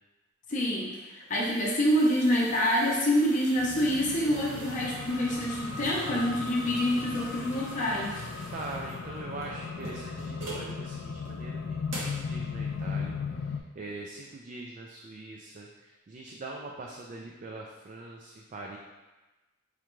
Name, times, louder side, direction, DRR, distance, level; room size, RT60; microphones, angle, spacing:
voice 1, 0.5-8.2, equal, 40° left, -4 dB, 0.7 m, -27 dB
sound 1, 0.9-10.7 11.2-11.3 11.9-12.3, right 1 dB, 80° right, 1.0 m, -44 dB
sound 2, 3.6-13.6, left 5 dB, 80° left, 0.3 m, -37 dB
voice 2, 8.5-18.8, right 2 dB, 40° right, -1 dB, 0.3 m, -43 dB
4.9 x 2.2 x 3.0 m, 1.1 s
head